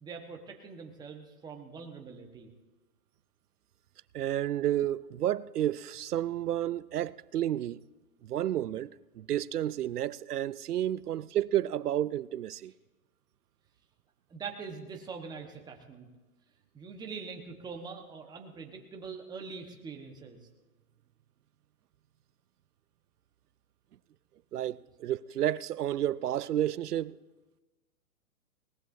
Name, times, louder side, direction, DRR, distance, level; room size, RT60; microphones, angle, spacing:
voice 1, 0.0-2.5 14.3-16.1 16.7-20.5, right 5 dB, 10° right, 1.2 m, -43 dB
voice 2, 4.1-7.8 8.2-12.7 24.5-27.2, right 12 dB, 85° right, 0.6 m, -31 dB
20.5 x 18.5 x 2.7 m
hypercardioid pair, 135°, 45 cm